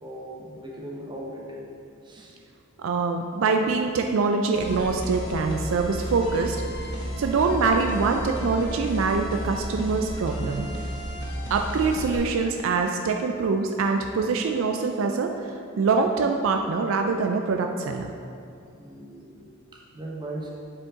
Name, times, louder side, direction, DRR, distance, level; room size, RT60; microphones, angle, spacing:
voice 1, 0.0-1.7 2.0-2.3 18.7-20.5, right 1 dB, 20° right, -3 dB, 1.0 m, -38 dB
voice 2, 2.8-6.6 7.2-10.7 11.5-18.1, right 4 dB, 70° right, 4 dB, 0.4 m, -24 dB
sound 1, 4.5-12.2, equal, 55° left, 1.2 m, -33 dB
7.4 x 5.1 x 3.7 m, 2.5 s
head